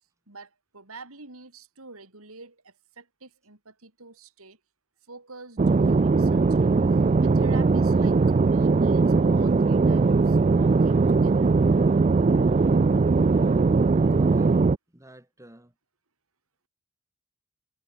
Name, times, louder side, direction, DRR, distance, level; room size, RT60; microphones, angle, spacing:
voice 1, 0.3-4.6 5.1-6.7 7.2-11.5, right 3 dB, 75° right, 3.7 m, -46 dB
sound 1, 5.6-14.8, right 4 dB, 30° right, 0.3 m, -20 dB
voice 2, 14.2-15.7, right 1 dB, 15° right, 2.6 m, -51 dB
head